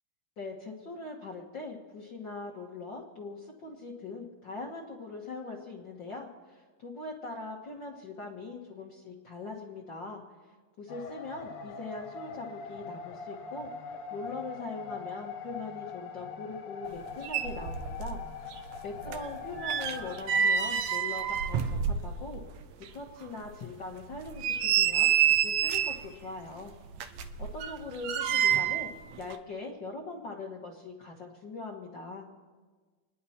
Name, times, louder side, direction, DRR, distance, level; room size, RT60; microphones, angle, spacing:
voice 1, 0.4-10.2 10.8-18.2 18.8-22.4 22.9-26.7 27.4-28.9 29.2-32.3, left 3 dB, 55° left, -2 dB, 1.3 m, -41 dB
sound 1, 10.9-20.4, left 5 dB, 90° left, 2.8 m, -42 dB
sound 2, 17.0-17.1 17.2-18.2 18.5-22.5 22.8-22.9 23.5-23.6 24.1-26.1 26.9-28.9 29.2-29.4, right 9 dB, 80° right, 1.6 m, -28 dB
29.5 x 10.5 x 4.3 m, 1.4 s
omnidirectional pair, 4.1 m